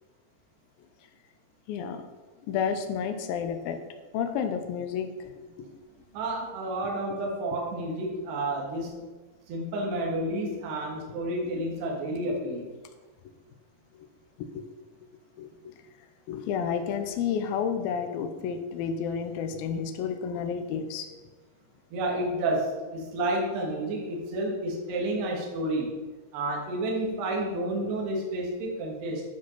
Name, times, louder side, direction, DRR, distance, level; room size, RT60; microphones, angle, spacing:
voice 1, 1.7-2.0 2.5-3.8 4.1-5.8 14.0-14.1 14.6-14.7 15.4-15.8 16.3-21.1, left 7 dB, 80° left, 7 dB, 2.2 m, -31 dB
voice 2, 6.1-9.1 9.5-12.7 21.9-25.9 26.3-29.2, right 1 dB, 75° right, -1 dB, 3.7 m, -30 dB
10.5 x 5.1 x 5.6 m, 1.3 s
omnidirectional pair, 5.0 m